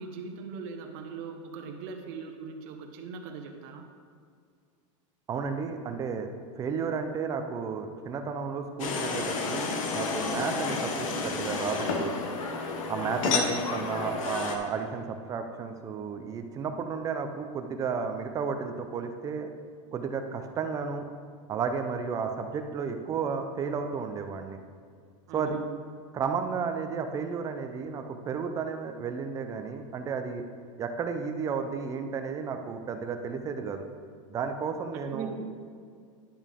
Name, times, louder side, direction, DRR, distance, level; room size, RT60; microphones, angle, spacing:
voice 1, 0.0-3.8 13.0-13.4 25.3-25.7 35.1-35.5, right 5 dB, 50° right, 3 dB, 1.1 m, -40 dB
voice 2, 5.3-6.3 6.6-12.1 12.9-19.5 19.9-21.1 21.5-24.6 25.3-25.6 26.1-30.4 30.8-33.9 34.3-35.3, right 5 dB, 20° right, 6 dB, 0.6 m, -33 dB
sound 1, 8.8-14.6, left 4 dB, 85° left, 1.1 m, -30 dB
10.0 x 7.1 x 3.7 m, 2.1 s
supercardioid pair, 155°, 17 cm